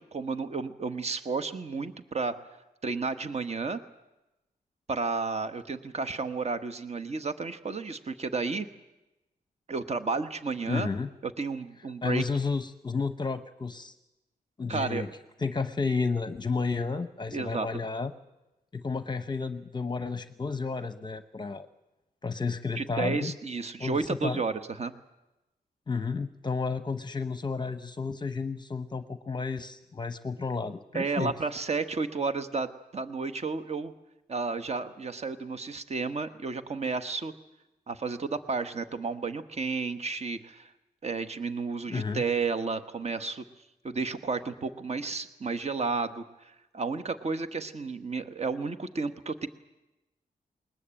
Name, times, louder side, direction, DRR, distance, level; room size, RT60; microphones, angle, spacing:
voice 1, 0.0-2.4 2.8-3.8 4.9-8.7 9.7-10.9 11.2-12.2 14.7-15.1 17.3-17.7 22.7-24.9 30.9-33.9 34.3-37.3 37.9-40.7 41.0-43.4 43.8-49.5, right 4 dB, 40° right, 11 dB, 1.3 m, -32 dB
voice 2, 10.7-11.1 12.0-13.9 14.6-15.1 15.4-18.1 18.7-21.7 22.2-23.4 23.8-24.4 25.9-31.3 41.9-42.2, left 4 dB, 30° left, 11 dB, 0.8 m, -32 dB
20.5 x 20.5 x 8.9 m, 0.98 s
cardioid pair, 95°, 16 cm